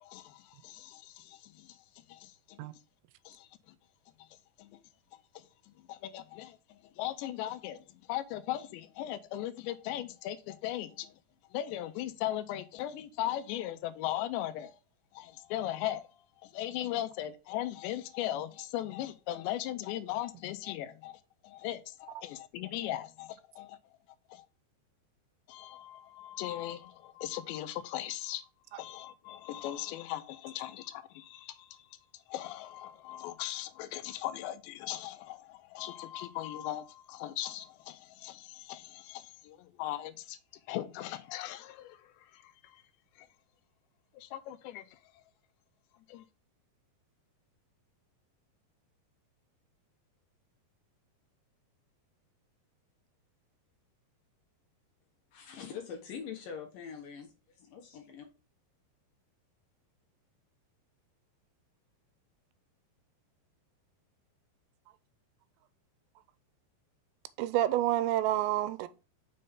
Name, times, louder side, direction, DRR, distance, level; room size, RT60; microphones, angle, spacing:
voice 1, 0.0-1.7 2.1-2.6 3.3-3.5 4.6-4.7 5.9-6.6 7.0-7.8 8.1-11.1 11.5-14.7 15.2-16.1 16.5-21.2 21.4-23.8 24.3-24.4 25.5-28.4 28.8-31.5 32.3-40.4 40.7-42.0 44.2-44.8 46.1-46.2, left 13 dB, 85° left, 2.9 m, -38 dB
voice 2, 55.3-57.3 57.6-58.3, left 7 dB, 65° left, 2.5 m, -43 dB
voice 3, 67.4-68.9, right 14 dB, 85° right, 2.8 m, -28 dB
6.6 x 5.4 x 3.6 m
omnidirectional pair, 5.1 m